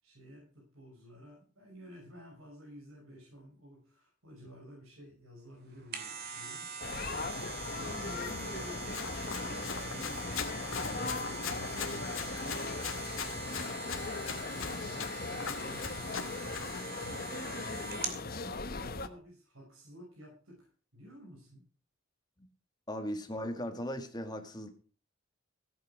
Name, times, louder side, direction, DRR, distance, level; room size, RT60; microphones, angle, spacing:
voice 1, 0.0-6.7 7.6-12.6 13.2-21.6, equal, 80° right, -2 dB, 6.0 m, -52 dB
sound 1, 5.6-18.2 18.7-18.8, right 5 dB, 50° right, 2.7 m, -43 dB
sound 2, 6.8-19.1, left 3 dB, 45° left, 1.1 m, -39 dB
Run, 8.9-16.8, left 6 dB, 75° left, 2.3 m, -41 dB
voice 2, 22.9-24.7, equal, 20° left, 5 dB, 2.0 m, -37 dB
16.5 x 9.3 x 5.1 m, 0.38 s
head